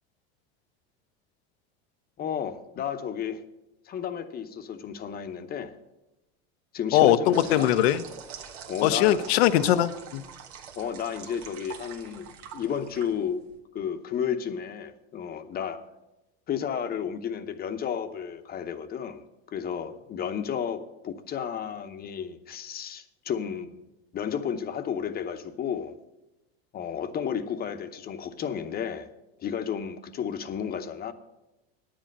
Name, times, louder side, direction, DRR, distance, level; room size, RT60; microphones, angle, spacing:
voice 1, 2.2-3.4 3.9-5.7 6.7-7.7 8.7-9.3 10.8-13.4 13.7-15.8 16.5-19.2 19.5-23.8 24.1-25.9 26.7-29.1 29.4-31.1, left 8 dB, 30° left, 9 dB, 0.8 m, -32 dB
voice 2, 6.9-8.0 8.8-10.2, left 12 dB, 90° left, 14 dB, 0.7 m, -21 dB
sound 1, 7.3-13.6, right 8 dB, 85° right, 1.4 m, -44 dB
10.0 x 7.6 x 6.6 m, 0.97 s
supercardioid pair, 125°, 31 cm